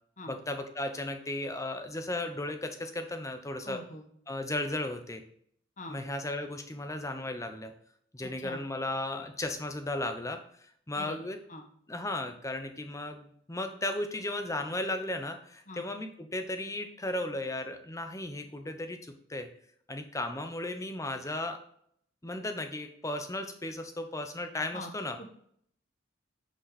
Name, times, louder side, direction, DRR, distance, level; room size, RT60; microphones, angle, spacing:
voice 1, 0.3-3.8 4.3-5.2 5.9-7.7 8.1-11.4 11.9-19.5 19.9-21.6 22.2-25.2, left 1 dB, 15° left, 7 dB, 0.8 m, -35 dB
voice 2, 3.6-4.0 5.8-6.0 8.4-8.6 11.0-11.2 11.5-11.6 15.7-15.8 24.7-24.9 25.2-25.3, left 1 dB, 35° left, 4 dB, 1.3 m, -42 dB
9.4 x 5.4 x 4.1 m, 0.65 s
head